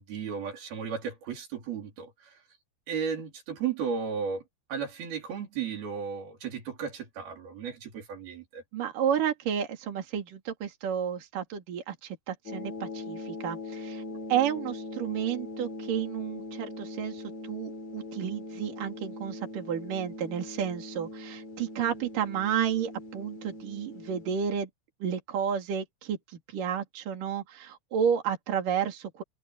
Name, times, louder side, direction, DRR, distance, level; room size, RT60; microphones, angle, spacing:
voice 1, 0.0-2.3 2.9-4.4 4.7-8.6, right 6 dB, 90° right, 5.7 m, -34 dB
voice 2, 8.7-14.0 14.3-24.7 25.0-29.2, right 8 dB, 65° right, 4.1 m, -31 dB
sound 1, 12.5-24.4, left 2 dB, 50° left, 5.1 m, -41 dB
omnidirectional pair, 4.2 m